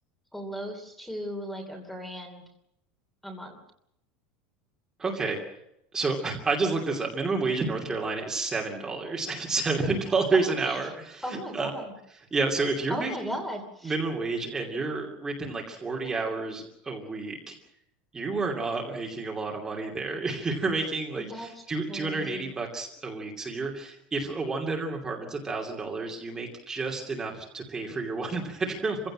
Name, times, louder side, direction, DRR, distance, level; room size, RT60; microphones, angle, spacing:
voice 1, 0.3-2.4 3.2-3.6 10.4-10.8 11.2-11.9 12.9-13.9 21.2-21.5 21.9-22.5, equal, 5° left, 3 dB, 2.9 m, -37 dB
voice 2, 5.0-5.4 5.9-11.7 12.3-13.4 13.8-17.5 18.1-29.0, right 3 dB, 15° right, 0 dB, 2.8 m, -30 dB
26.0 x 16.5 x 7.6 m, 0.77 s
supercardioid pair, 170°, 4 cm